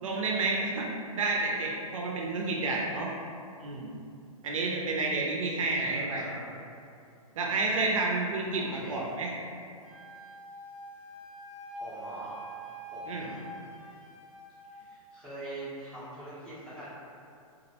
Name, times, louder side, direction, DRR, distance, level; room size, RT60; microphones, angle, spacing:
voice 1, 0.0-3.1 3.6-3.9 4.4-6.3 7.4-9.3 13.1-13.3, right 3 dB, 60° right, -2 dB, 0.4 m, -30 dB
voice 2, 5.8-6.6 8.5-9.2 11.8-12.4 12.9-13.5 14.7-16.9, right 1 dB, 5° left, -14 dB, 0.6 m, -43 dB
Wind instrument woodwind instrument, 9.8-14.8, right 1 dB, 65° left, 0.5 m, -45 dB
2.3 x 2.0 x 2.7 m, 2.4 s
hypercardioid pair, 155°, 19 cm